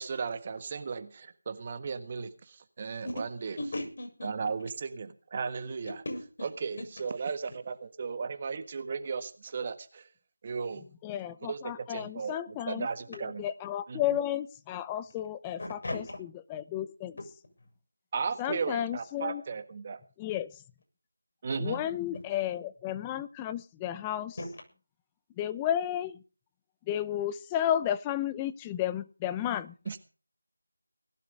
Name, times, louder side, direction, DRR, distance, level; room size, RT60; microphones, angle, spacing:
voice 1, 0.0-3.6 4.2-6.0 6.4-10.1 10.4-10.8 11.4-13.5 13.9-14.0 18.1-20.0 21.4-21.8 29.8-30.0, right 5 dB, 25° right, 10 dB, 1.4 m, -35 dB
voice 2, 3.6-4.5 6.1-6.2 15.6-16.2 24.4-24.5, left 1 dB, 45° left, 5 dB, 7.1 m, -36 dB
voice 3, 11.0-12.9 13.4-16.0 16.5-17.1 18.4-19.4 20.2-20.5 21.6-24.4 25.4-26.2 26.9-29.7, left 11 dB, 10° left, 13 dB, 0.7 m, -32 dB
19.5 x 12.0 x 5.3 m, 0.37 s
figure-of-eight pair, 170°, 0 cm